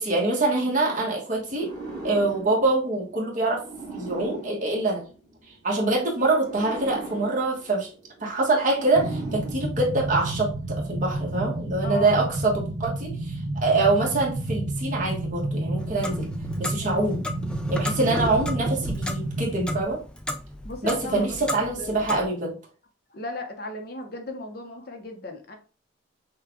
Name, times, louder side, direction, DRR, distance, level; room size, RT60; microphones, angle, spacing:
voice 1, 0.0-1.7 2.0-3.6 3.9-5.0 5.6-7.9 8.2-16.3 16.6-17.3 17.7-20.0 20.8-22.5, right 2 dB, 40° right, -2 dB, 1.3 m, -25 dB
sound 1, 1.5-5.6 6.3-10.3, right 2 dB, 20° right, 1.5 m, -40 dB
sound 2, 9.0-19.8, right 2 dB, 60° right, 0.6 m, -30 dB
voice 2, 11.8-12.2 16.8-17.0 20.6-22.0 23.1-25.6, left 2 dB, 50° left, 4 dB, 0.8 m, -36 dB
Clock, 15.8-22.3, left 1 dB, 5° left, 0.3 m, -34 dB
5.8 x 2.4 x 3.5 m, 0.37 s
head